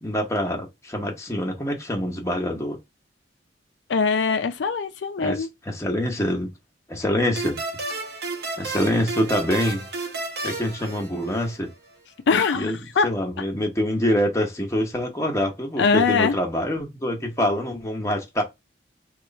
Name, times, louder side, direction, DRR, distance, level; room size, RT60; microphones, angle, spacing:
voice 1, 0.0-2.8 5.2-5.4 5.7-6.5 6.9-7.6 8.6-9.9 10.4-11.7 12.5-12.8 13.0-18.4, left 1 dB, 15° left, 0.9 m, -25 dB
voice 2, 3.9-5.5 12.3-13.1 15.8-16.4, left 5 dB, 80° left, 0.4 m, -22 dB
sound 1, 7.4-11.7, right 3 dB, 60° right, 0.9 m, -32 dB
3.1 x 2.4 x 3.9 m
head